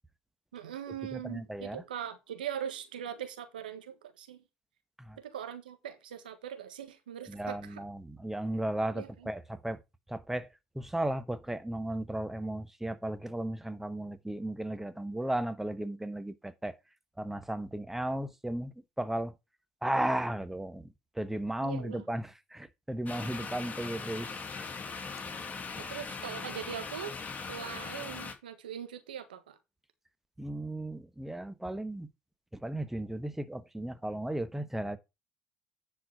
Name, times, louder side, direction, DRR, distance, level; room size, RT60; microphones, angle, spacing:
voice 1, 0.5-4.4 5.2-7.8 8.9-9.3 21.6-22.1 25.8-27.1 27.5-29.6, right 9 dB, 90° right, 1.4 m, -41 dB
voice 2, 1.1-1.8 5.1-5.2 7.3-9.8 10.1-10.5 10.7-16.8 17.2-18.7 19.0-19.3 19.8-20.9 21.2-24.3 30.4-32.1 32.6-35.0, right 1 dB, 5° right, 1.1 m, -35 dB
sound 1, 23.1-28.3, left 4 dB, 35° left, 2.5 m, -40 dB
10.0 x 4.6 x 4.8 m
hypercardioid pair, 65°, 5 cm